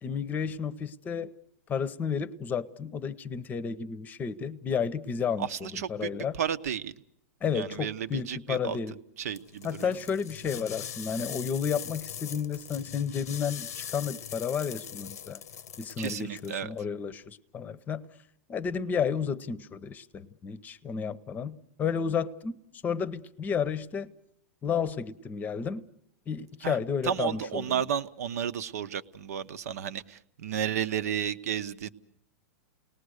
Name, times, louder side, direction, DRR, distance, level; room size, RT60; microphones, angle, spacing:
voice 1, 0.0-1.3 1.7-6.4 7.4-8.9 9.6-15.4 15.8-18.1 18.5-22.6 22.8-24.1 24.6-25.8 26.3-27.8, left 6 dB, 20° left, 0.8 m, -32 dB
voice 2, 5.4-6.9 7.5-8.8 9.2-10.0 16.0-16.7 26.6-26.8 27.0-31.9, right 8 dB, 75° right, 1.0 m, -32 dB
sound 1, 9.3-16.6, left 9 dB, 85° left, 0.8 m, -41 dB
29.0 x 19.5 x 6.5 m
hypercardioid pair, 130°, 8 cm